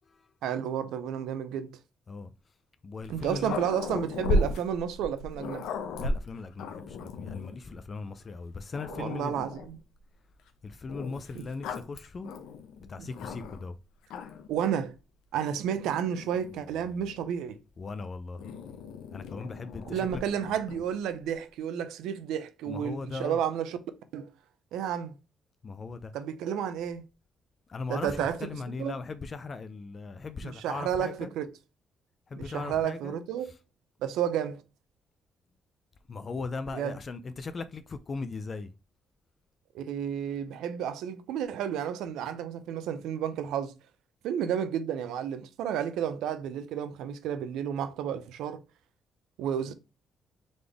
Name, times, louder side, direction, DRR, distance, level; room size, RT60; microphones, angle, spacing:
voice 1, 0.4-1.7 3.1-5.7 8.9-9.8 11.3-11.4 13.0-13.1 14.5-14.9 15.3-17.6 19.9-23.8 24.1-24.3 24.7-25.1 26.1-27.0 27.9-28.5 28.8-28.9 30.4-31.5 32.4-33.5 34.0-34.6 36.7-37.0 39.7-43.7 44.2-48.6 49.4-49.7, right 9 dB, 90° right, 0.6 m, -31 dB
voice 2, 2.8-3.6 6.0-9.5 10.6-12.3 12.9-13.8 17.8-18.4 19.1-20.2 22.7-23.4 25.6-26.1 27.7-31.3 32.3-33.2 36.1-38.7, left 4 dB, 40° left, 0.4 m, -38 dB
Growling, 3.0-7.6 8.3-8.4 8.7-9.8 10.9-13.7 14.0-14.6 15.4-17.3 18.4-20.9, left 2 dB, 85° left, 0.7 m, -36 dB
4.0 x 3.4 x 3.4 m
cardioid pair, 90°, 0 cm